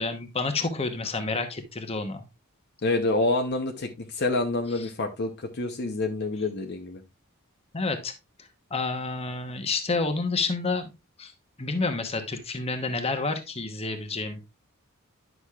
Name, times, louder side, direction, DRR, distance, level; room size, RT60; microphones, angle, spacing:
voice 1, 0.0-2.2 4.8-4.9 7.7-8.1 8.7-10.9 11.2-11.3 11.6-14.4, left 3 dB, 30° left, 1.0 m, -29 dB
voice 2, 2.8-7.0, left 2 dB, 50° left, 0.8 m, -27 dB
10.0 x 6.1 x 2.4 m
head